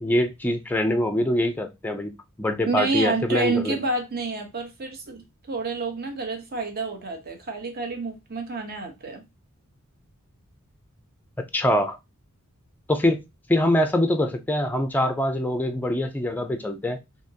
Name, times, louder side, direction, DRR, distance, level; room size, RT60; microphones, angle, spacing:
voice 1, 0.0-2.1 2.4-3.8 11.5-12.0 12.9-13.2 13.5-17.0, left 1 dB, 10° left, 0.4 m, -24 dB
voice 2, 2.7-5.2 5.5-9.2, right 3 dB, 45° right, 0.9 m, -28 dB
3.5 x 2.8 x 2.7 m
head